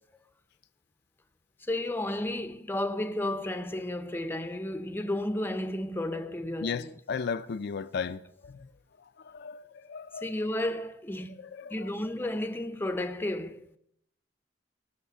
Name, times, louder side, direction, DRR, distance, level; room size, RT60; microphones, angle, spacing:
voice 1, 1.6-6.9 10.1-11.4 11.7-13.7, left 1 dB, 10° left, 0.6 m, -32 dB
voice 2, 6.6-8.7 9.2-10.3 11.4-11.9, left 5 dB, 60° left, 0.4 m, -35 dB
17.5 x 6.5 x 6.8 m
head